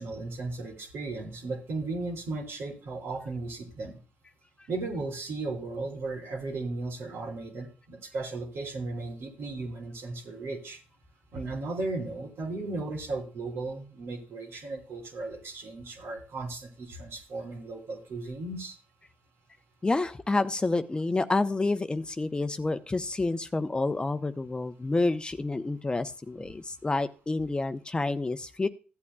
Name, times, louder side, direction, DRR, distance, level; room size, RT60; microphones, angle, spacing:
voice 1, 0.0-3.9 4.7-10.8 11.3-18.8, right 3 dB, 75° right, 2 dB, 3.1 m, -36 dB
voice 2, 19.8-28.7, left 2 dB, 20° left, 10 dB, 0.7 m, -29 dB
15.0 x 8.5 x 2.3 m, 0.35 s
cardioid pair, 80°, 4 cm